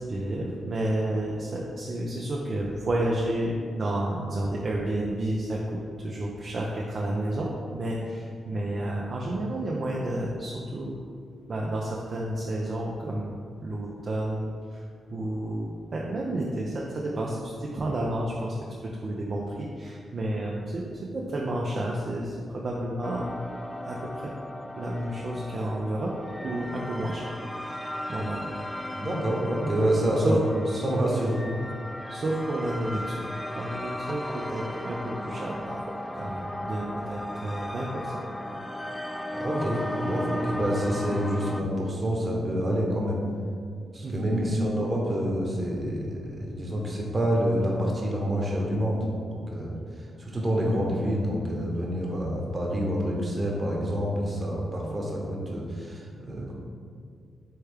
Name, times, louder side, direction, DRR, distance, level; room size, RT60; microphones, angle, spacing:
voice 1, 0.0-10.9 11.5-13.4 13.6-14.8 15.1-15.7 15.9-18.6 18.8-23.3 23.8-24.3 24.8-26.1 26.4-27.3 27.6-27.8 28.1-28.5 30.2-30.8 32.1-33.3 33.5-38.2 44.0-44.6 50.5-50.7, right 1 dB, 55° right, -3 dB, 0.5 m, -31 dB
sound 1, 23.0-41.6, left 1 dB, 10° left, 0.4 m, -36 dB
voice 2, 28.9-30.4 30.8-31.4 39.3-43.2 43.9-49.0 49.3-49.8 50.2-56.5, equal, 40° right, -2 dB, 1.1 m, -27 dB
4.6 x 3.3 x 3.4 m, 2.2 s
supercardioid pair, 50°, 0 cm